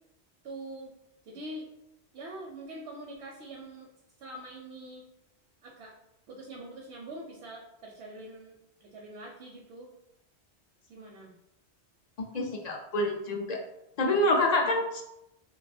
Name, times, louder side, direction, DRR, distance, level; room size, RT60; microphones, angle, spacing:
voice 1, 0.4-0.9 1.2-1.7 2.1-3.9 4.2-5.0 5.6-5.9 6.3-8.5 8.8-9.9 10.9-11.3, right 1 dB, 80° right, -2 dB, 0.9 m, -44 dB
voice 2, 12.3-13.6 14.0-15.0, left 1 dB, 55° left, 1 dB, 0.4 m, -27 dB
2.4 x 2.3 x 4.0 m, 0.85 s
omnidirectional pair, 1.1 m